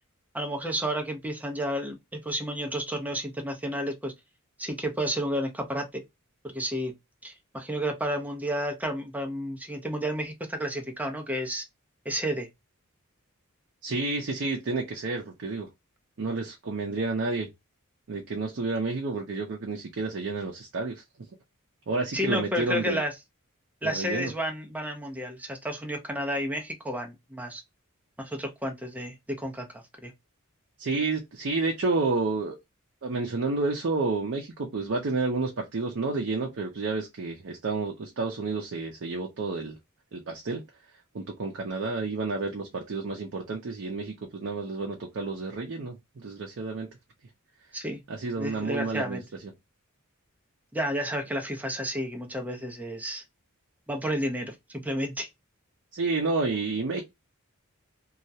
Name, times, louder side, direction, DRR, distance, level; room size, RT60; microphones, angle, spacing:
voice 1, 0.3-4.1 4.6-6.0 6.5-6.9 7.2-11.7 12.1-12.5 22.1-23.1 23.8-27.6 28.2-30.1 47.7-48.0 48.4-49.2 50.7-53.2 53.9-55.3, equal, 5° right, 0.5 m, -31 dB
voice 2, 13.8-15.7 16.2-17.5 18.1-21.0 21.9-23.0 23.8-24.3 30.8-32.6 33.0-39.8 40.1-40.6 41.1-46.9 48.1-49.2 55.9-57.0, right 3 dB, 60° right, 0.5 m, -30 dB
2.3 x 2.0 x 2.6 m
head